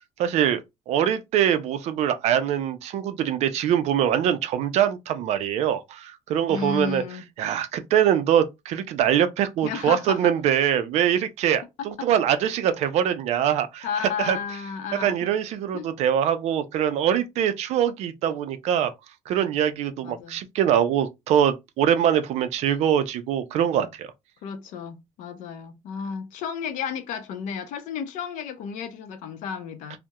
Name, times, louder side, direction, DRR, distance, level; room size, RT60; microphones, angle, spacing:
voice 1, 0.2-0.6 0.9-7.0 7.4-13.9 14.2-14.4 15.0-18.9 19.3-24.1, right 9 dB, 55° right, 0.4 m, -23 dB
voice 2, 6.5-7.2 9.6-10.3 12.0-12.1 13.8-15.1 15.7-15.8 20.0-20.4 24.4-30.0, left 6 dB, 75° left, 0.5 m, -32 dB
2.3 x 2.0 x 2.8 m
cardioid pair, 175°, 13 cm